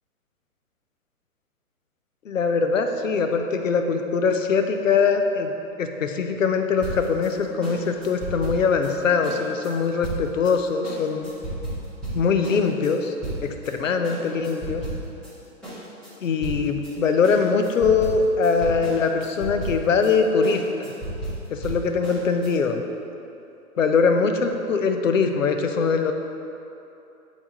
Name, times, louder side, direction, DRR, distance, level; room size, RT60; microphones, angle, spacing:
voice 1, 2.3-5.5 5.8-11.3 12.1-13.1 13.4-14.8 16.2-20.9 21.5-22.8 23.8-26.1, left 5 dB, 60° left, 6 dB, 0.6 m, -22 dB
sound 1, 6.8-13.7 14.0-15.3 15.6-22.5, right 2 dB, ahead, 1.4 m, -34 dB
8.8 x 3.5 x 4.0 m, 2.8 s
figure-of-eight pair, 125°, 44 cm